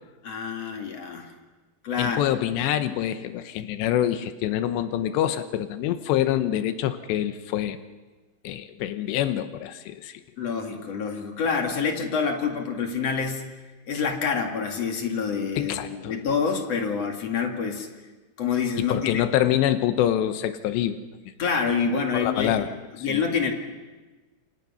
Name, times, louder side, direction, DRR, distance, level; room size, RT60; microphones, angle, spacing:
voice 1, 0.2-1.3 1.8-2.2 10.4-13.4 13.9-17.9 18.4-19.2 21.4-22.6 23.0-23.5, left 5 dB, 45° left, 3 dB, 2.7 m, -27 dB
voice 2, 2.0-7.8 8.4-10.2 15.6-16.1 18.8-21.0 22.1-23.2, left 11 dB, 85° left, 10 dB, 3.1 m, -26 dB
28.0 x 28.0 x 5.6 m, 1.2 s
omnidirectional pair, 4.9 m